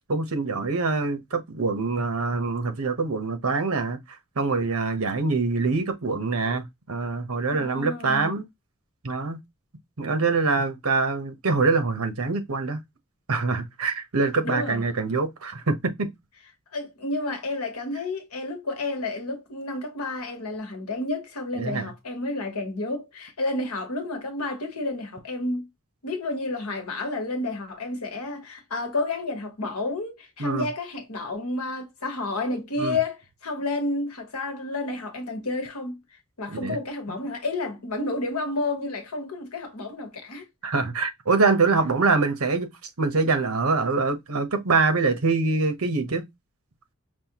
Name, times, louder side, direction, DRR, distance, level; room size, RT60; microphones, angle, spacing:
voice 1, 0.1-4.0 4.4-8.4 9.0-9.4 10.0-12.8 13.3-16.1 21.6-21.9 30.4-30.7 32.8-33.0 36.5-36.8 37.1-37.2 40.6-42.7 43.0-46.2, right 4 dB, 80° right, 0.9 m, -24 dB
voice 2, 7.5-8.4 14.4-14.8 16.7-25.7 26.0-36.0 36.4-40.5, left 2 dB, 85° left, 1.2 m, -30 dB
5.5 x 2.4 x 2.9 m
head